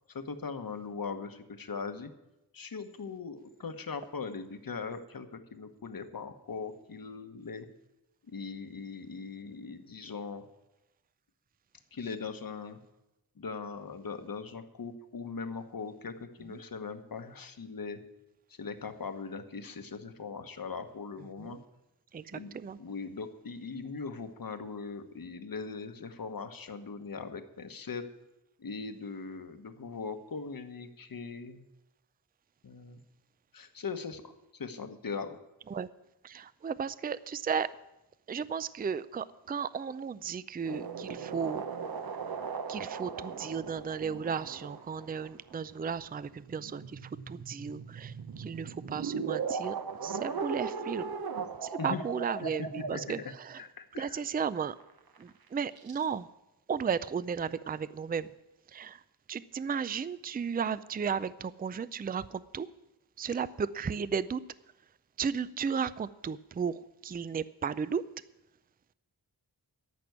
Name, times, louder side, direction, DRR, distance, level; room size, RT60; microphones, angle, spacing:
voice 1, 0.1-2.1 2.5-7.7 8.3-10.4 11.9-12.8 13.4-18.0 18.6-21.6 22.3-28.0 28.6-31.7 32.6-33.0 33.5-35.4 51.8-52.0 52.6-53.2 53.6-54.2, left 5 dB, 60° left, 8 dB, 1.2 m, -40 dB
voice 2, 22.1-22.8 35.7-35.9 36.2-37.7 38.3-42.2 42.7-51.1 51.6-53.6 54.0-54.8 55.2-56.3 56.7-58.3 58.7-59.0 59.3-62.7 63.2-64.4 65.2-68.0, right 6 dB, 25° right, 16 dB, 0.4 m, -34 dB
sound 1, 40.6-53.6 54.3-54.4 54.8-55.3 55.8-56.0, right 5 dB, 70° right, 1.0 m, -38 dB
14.0 x 6.1 x 9.3 m, 0.93 s
wide cardioid pair, 110°, 39 cm